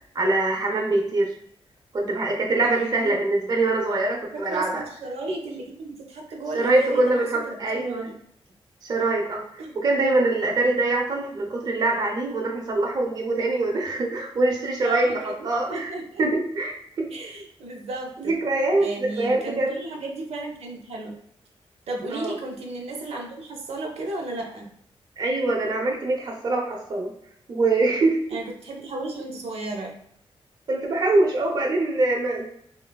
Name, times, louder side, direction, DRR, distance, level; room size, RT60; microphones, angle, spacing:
voice 1, 0.1-1.3 1.9-4.8 6.5-8.1 8.8-15.9 16.2-17.1 18.2-19.8 22.1-22.3 25.2-27.1 27.5-28.2 30.7-32.4, right 2 dB, 40° right, 0 dB, 0.5 m, -23 dB
voice 2, 2.6-3.2 4.3-8.2 9.6-9.7 14.8-16.2 17.1-18.3 18.8-21.2 21.9-24.7 28.3-29.9, right 2 dB, 90° right, 0 dB, 0.6 m, -34 dB
3.6 x 2.2 x 2.2 m, 0.68 s
wide cardioid pair, 175°, 10 cm